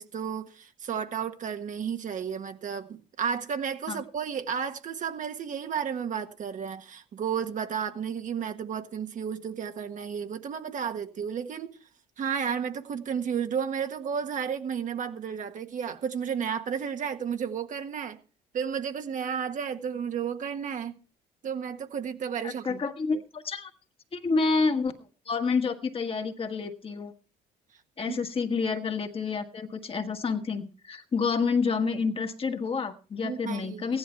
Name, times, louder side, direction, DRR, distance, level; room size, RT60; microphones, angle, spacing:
voice 1, 0.0-11.8 12.2-18.2 18.5-20.9 21.4-22.8 28.1-28.2 33.2-33.8, right 7 dB, 50° right, 1.5 m, -32 dB
voice 2, 22.4-23.7 24.1-25.0 25.2-27.1 28.0-34.0, left 4 dB, 35° left, 1.6 m, -29 dB
15.5 x 11.0 x 4.5 m
cardioid pair, 110°, 17 cm